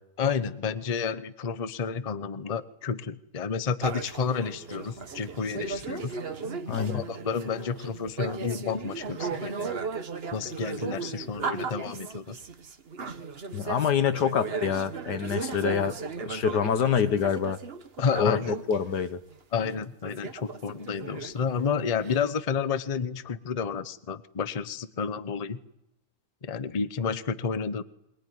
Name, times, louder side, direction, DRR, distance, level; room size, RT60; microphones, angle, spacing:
voice 1, 0.2-6.1 6.8-9.8 10.3-12.4 18.0-18.5 19.5-25.6 26.4-27.8, left 6 dB, 30° left, 13 dB, 0.8 m, -30 dB
sound 1, 3.8-18.8 19.3-19.4 19.6-22.3, right 5 dB, 40° right, 1.3 m, -36 dB
voice 2, 6.7-7.0 13.5-17.6 18.2-19.2, left 7 dB, 90° left, 11 dB, 1.9 m, -26 dB
22.5 x 20.5 x 9.5 m, 0.92 s
omnidirectional pair, 1.7 m